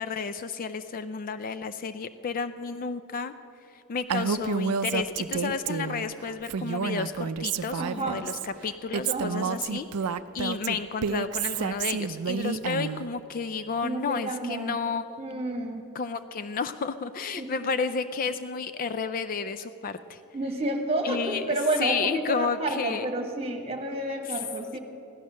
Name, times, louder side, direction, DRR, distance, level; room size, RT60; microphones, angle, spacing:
voice 1, 0.0-3.3 3.9-9.9 10.3-15.4 15.9-20.2 21.0-23.1 24.3-24.4 24.7-24.8, left 5 dB, 40° left, 12 dB, 0.4 m, -31 dB
Female speech woman speaking, 4.1-6.0 6.4-8.5 8.9-13.1, right 6 dB, 80° right, 0.5 m, -29 dB
voice 2, 7.8-8.2 9.1-9.5 13.8-14.8 15.2-15.8 17.4-17.7 20.3-24.8, right 2 dB, 25° right, 3 dB, 1.5 m, -30 dB
15.5 x 12.0 x 6.4 m, 2.9 s
head